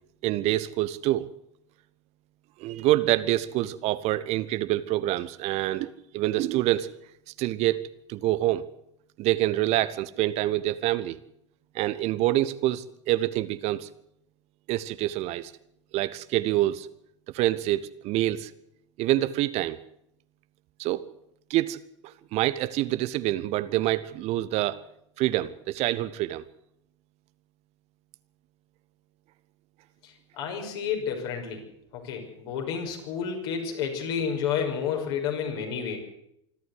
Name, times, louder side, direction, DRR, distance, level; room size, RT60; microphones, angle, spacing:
voice 1, 0.2-1.3 2.6-6.9 7.4-8.6 9.2-11.2 11.7-13.9 14.7-15.5 15.9-16.9 17.3-18.5 19.0-19.8 20.8-21.1 21.5-21.8 22.0-24.8 25.2-26.4, right 15 dB, 45° right, 1.1 m, -26 dB
voice 2, 30.0-31.6 31.9-36.0, left 7 dB, 60° left, 6.0 m, -30 dB
26.0 x 12.5 x 8.2 m
figure-of-eight pair, 80°, 15 cm